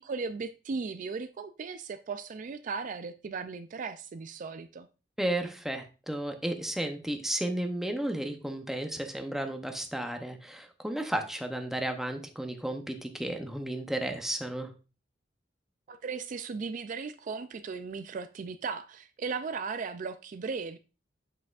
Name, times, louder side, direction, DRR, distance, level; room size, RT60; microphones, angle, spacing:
voice 1, 0.0-4.9 15.9-20.8, right 5 dB, 45° right, 0.3 m, -37 dB
voice 2, 5.2-14.7, right 1 dB, ahead, 0.7 m, -33 dB
7.6 x 5.8 x 2.4 m
head